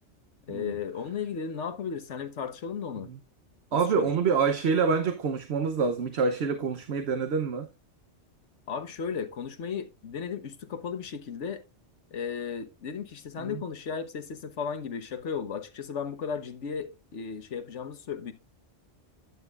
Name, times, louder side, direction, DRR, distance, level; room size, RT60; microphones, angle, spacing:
voice 1, 0.5-3.1 4.0-4.1 8.7-11.6 12.1-18.3, left 6 dB, 85° left, 1.4 m, -35 dB
voice 2, 3.7-7.7 13.4-13.6, right 5 dB, 65° right, 1.1 m, -27 dB
11.5 x 9.0 x 2.4 m
omnidirectional pair, 1.2 m